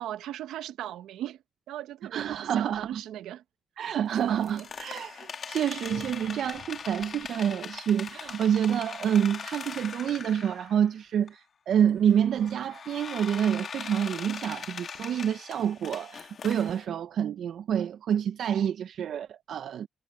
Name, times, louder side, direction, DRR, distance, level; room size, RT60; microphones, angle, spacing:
voice 1, 0.0-1.4 1.7-3.4 4.1-4.7, right 12 dB, 85° right, 1.1 m, -38 dB
voice 2, 2.1-3.0 3.8-19.9, right 9 dB, 65° right, 0.6 m, -28 dB
sound 1, 4.1-10.9 11.3-11.4 12.1-16.9, left 6 dB, 50° left, 1.4 m, -41 dB
cardioid pair, 90°, 0 cm